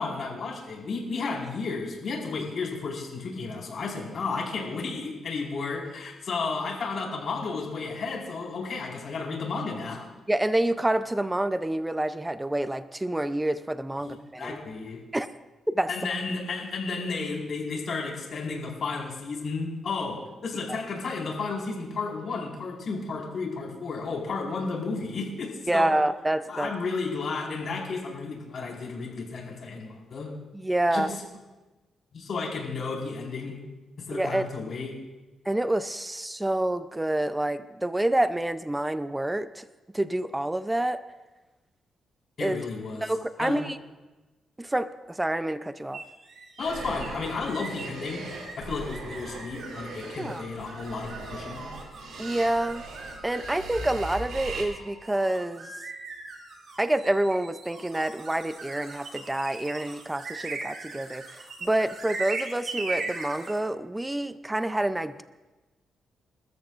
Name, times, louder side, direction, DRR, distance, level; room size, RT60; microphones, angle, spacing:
voice 1, 0.0-10.1 14.0-15.0 15.9-25.9 26.5-30.3 30.9-31.1 32.1-33.6 34.1-34.9 42.4-43.0 43.4-43.6 46.6-48.2 48.6-51.7, left 4 dB, 55° left, -2 dB, 4.7 m, -33 dB
voice 2, 10.3-14.6 15.1-15.3 15.7-15.9 25.7-26.7 30.5-31.1 34.1-34.5 35.5-39.7 39.9-41.0 42.4-42.6 43.0-43.8 44.6-46.0 50.2-50.4 52.2-52.8 53.2-55.7 56.8-65.2, right 1 dB, 10° right, 11 dB, 0.5 m, -27 dB
sound 1, 45.9-63.6, right 3 dB, 60° right, 2.3 m, -40 dB
sound 2, 46.6-54.6, right 3 dB, 80° right, 3.4 m, -40 dB
27.5 x 13.5 x 2.5 m, 1.2 s
cardioid pair, 105°, 0 cm